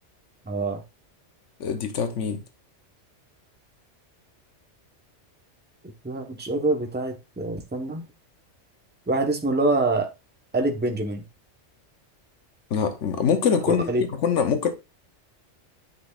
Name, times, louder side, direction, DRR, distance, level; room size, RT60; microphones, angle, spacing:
voice 1, 0.5-0.8 6.0-8.0 9.1-10.1 10.5-11.2 13.7-14.0, right 2 dB, 10° right, 0.9 m, -25 dB
voice 2, 1.6-2.4 12.7-13.9 14.2-14.7, left 7 dB, 85° left, 1.2 m, -23 dB
9.4 x 6.1 x 2.4 m
omnidirectional pair, 1.2 m